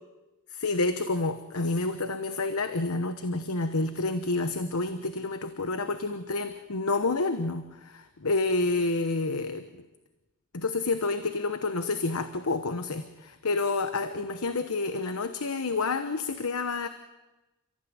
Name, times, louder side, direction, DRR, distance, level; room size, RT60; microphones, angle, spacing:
voice 1, 0.5-9.8 10.5-16.9, left 3 dB, 85° left, 10 dB, 1.1 m, -29 dB
29.5 x 15.0 x 9.6 m, 1.1 s
head